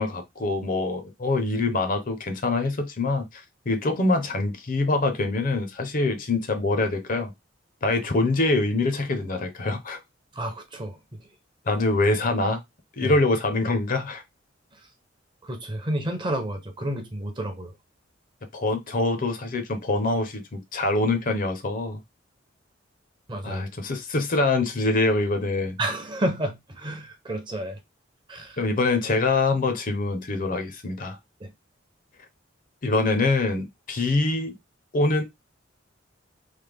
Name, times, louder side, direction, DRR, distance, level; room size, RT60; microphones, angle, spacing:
voice 1, 0.0-7.3 7.8-10.0 11.7-12.6 12.9-14.2 18.5-22.0 23.4-25.8 28.6-31.2 32.8-34.5 34.9-35.2, left 2 dB, 45° left, 0.7 m, -24 dB
voice 2, 10.4-11.0 13.0-13.1 15.4-17.7 23.3-23.6 25.8-27.8 28.3-28.6 31.4-31.5, right 1 dB, 25° right, 0.7 m, -30 dB
3.3 x 2.1 x 3.4 m
head